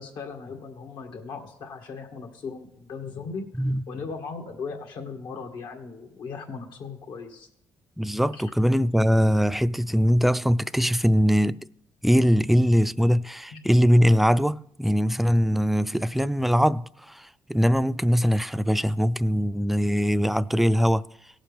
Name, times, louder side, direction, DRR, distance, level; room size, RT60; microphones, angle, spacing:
voice 1, 0.0-7.5 8.3-8.4 13.5-13.6, left 5 dB, 75° left, 2.1 m, -38 dB
voice 2, 8.0-11.7 12.0-21.0, equal, ahead, 0.4 m, -22 dB
17.5 x 7.5 x 3.5 m
cardioid pair, 75°, 8 cm